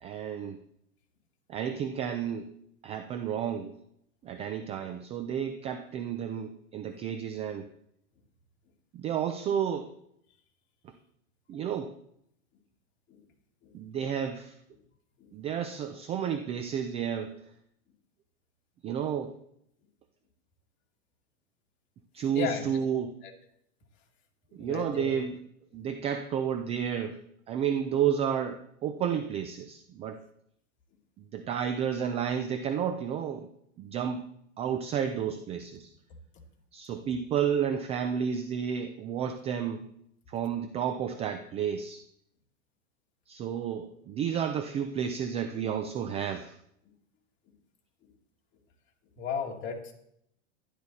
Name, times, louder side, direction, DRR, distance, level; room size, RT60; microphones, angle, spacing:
voice 1, 0.0-0.6 1.5-2.5 2.8-3.7 4.2-7.7 8.9-9.9 11.5-11.9 13.7-14.5 15.3-17.3 18.8-19.3 22.1-23.1 24.5-25.3 25.7-27.2 27.5-30.2 31.3-33.5 33.8-34.2 34.6-35.9 36.7-39.9 40.3-42.0 43.3-46.6, right 8 dB, 15° right, 8 dB, 0.4 m, -31 dB
voice 2, 22.3-23.3 24.5-25.1 49.2-49.9, left 6 dB, 30° left, 0 dB, 2.5 m, -36 dB
12.0 x 11.5 x 4.2 m, 0.73 s
supercardioid pair, 145°, 38 cm